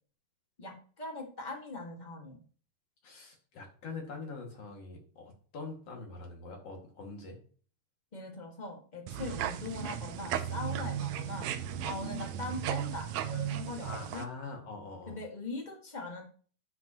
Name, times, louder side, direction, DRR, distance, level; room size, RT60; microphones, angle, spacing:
voice 1, 0.6-2.4 8.1-11.5 11.8-14.2 15.1-16.2, left 2 dB, 20° left, 1 dB, 1.1 m, -41 dB
voice 2, 3.0-7.4 9.2-9.3 13.8-15.2, left 3 dB, 50° left, 1 dB, 2.9 m, -44 dB
sound 1, 9.1-14.2, right 10 dB, 75° right, 1.7 m, -36 dB
10.5 x 7.8 x 3.0 m, 0.43 s
omnidirectional pair, 3.8 m